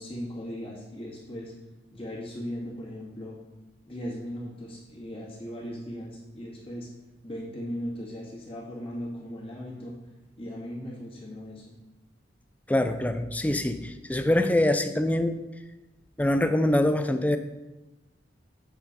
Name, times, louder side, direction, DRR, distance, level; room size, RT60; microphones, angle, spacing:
voice 1, 0.0-1.5 1.9-3.4 3.9-6.9 7.2-9.9 10.4-11.6, equal, 30° left, -5 dB, 2.3 m, -38 dB
voice 2, 12.7-15.4 16.2-17.4, left 1 dB, 10° left, 8 dB, 0.4 m, -24 dB
7.9 x 4.5 x 5.5 m, 1.1 s
head